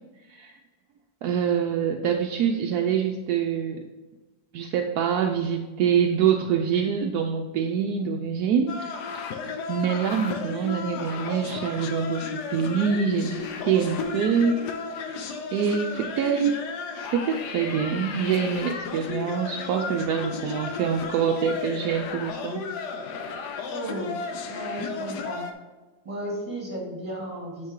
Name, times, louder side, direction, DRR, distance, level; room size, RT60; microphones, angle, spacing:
voice 1, 1.2-3.8 4.5-9.2 9.7-14.7 15.1-15.2 15.5-16.6 17.0-22.7, right 7 dB, 75° right, 4 dB, 1.1 m, -25 dB
sound 1, 8.7-25.5, left 4 dB, 90° left, 1.4 m, -34 dB
voice 2, 23.7-25.5 26.0-27.7, right 1 dB, 20° right, -3 dB, 2.4 m, -34 dB
9.5 x 4.8 x 3.6 m, 1.2 s
omnidirectional pair, 1.7 m